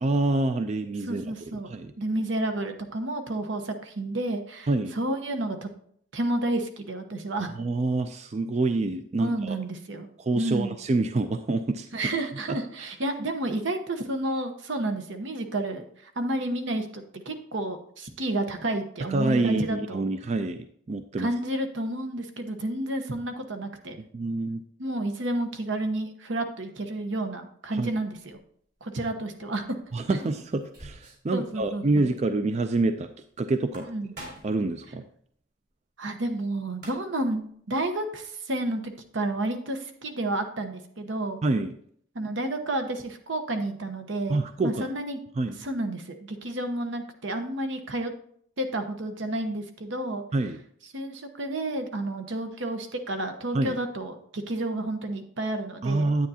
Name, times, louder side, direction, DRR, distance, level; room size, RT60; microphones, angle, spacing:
voice 1, 0.0-1.2 1.6-1.9 4.7-5.0 7.6-9.6 10.2-11.9 12.5-12.6 19.1-21.3 24.0-24.6 27.7-27.9 29.9-33.1 33.4-33.9 34.4-35.0 41.4-41.8 44.3-44.9 45.4-45.6 50.3-50.6 53.5-53.8 55.8-56.3, right 2 dB, 35° right, 9 dB, 0.4 m, -27 dB
voice 2, 1.1-1.7 2.0-4.7 4.9-5.7 6.1-7.5 9.2-10.1 10.3-10.8 11.9-20.0 21.2-24.0 24.8-28.4 28.8-29.8 30.1-30.3 31.3-32.1 33.9-34.1 36.0-37.4 37.7-41.4 42.1-45.2 45.6-48.1 48.6-50.2 50.9-56.1, right 1 dB, 75° right, 6 dB, 1.0 m, -31 dB
sound 1, 28.1-28.4 29.9-31.3 31.6-31.7 32.0-32.1 33.5-34.6 36.4-36.5 36.7-37.3, right 1 dB, 55° right, 4.0 m, -46 dB
9.5 x 8.9 x 2.8 m, 0.64 s
head